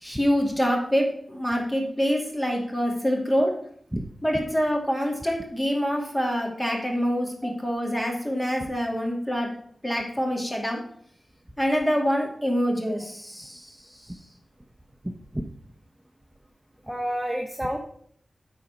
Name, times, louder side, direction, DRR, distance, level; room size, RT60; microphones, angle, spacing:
voice 1, 0.0-3.5 4.2-9.5 9.8-10.8 11.6-13.7, equal, 10° left, 1 dB, 2.4 m, -25 dB
voice 2, 16.8-17.8, equal, 10° right, 2 dB, 0.9 m, -29 dB
9.2 x 4.3 x 6.0 m, 0.62 s
wide cardioid pair, 65°, 0 cm